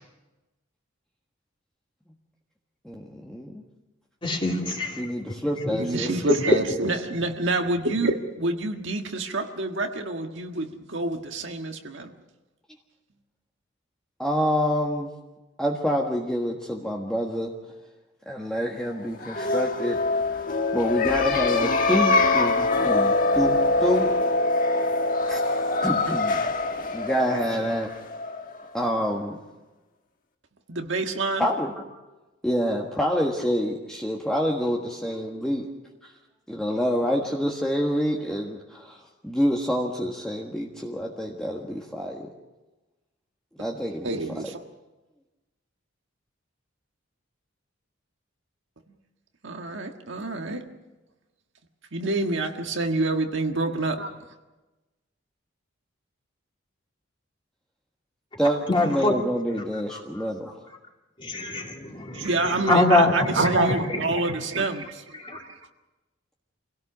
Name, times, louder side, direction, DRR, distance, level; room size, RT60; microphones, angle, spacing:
voice 1, 2.8-3.6 5.0-6.1 14.2-15.1 15.6-17.5 18.2-20.0 20.7-24.1 25.3-25.4 25.8-26.4 26.9-27.9 28.7-29.4 31.4-31.7 32.4-35.7 36.0-36.1 36.5-42.3 43.6-44.1 58.4-60.6, equal, 5° left, -2 dB, 1.5 m, -27 dB
voice 2, 4.2-5.0 5.7-5.8 6.5-6.6 58.7-59.1 59.9-60.0 61.2-62.3 62.7-63.5 65.2-65.4, left 2 dB, 25° left, 1 dB, 3.0 m, -23 dB
voice 3, 5.8-12.1 30.7-31.5 44.0-44.6 49.4-50.6 51.9-54.1 62.1-65.6, right 2 dB, 65° right, 4 dB, 1.7 m, -27 dB
sound 1, 19.1-28.7, left 3 dB, 45° left, 1.5 m, -24 dB
26.0 x 17.5 x 6.2 m, 1.1 s
head